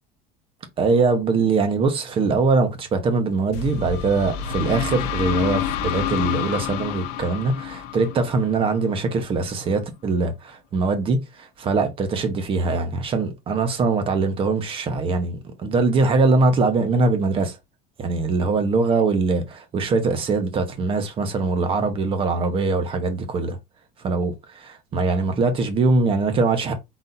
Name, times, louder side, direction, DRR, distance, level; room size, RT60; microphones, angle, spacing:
voice 1, 0.8-17.6 18.0-23.6 24.0-26.7, right 3 dB, 30° right, 1.0 m, -22 dB
sound 1, 3.5-9.2, left 9 dB, 75° left, 0.7 m, -28 dB
4.1 x 2.7 x 3.9 m
cardioid pair, 150°, 18 cm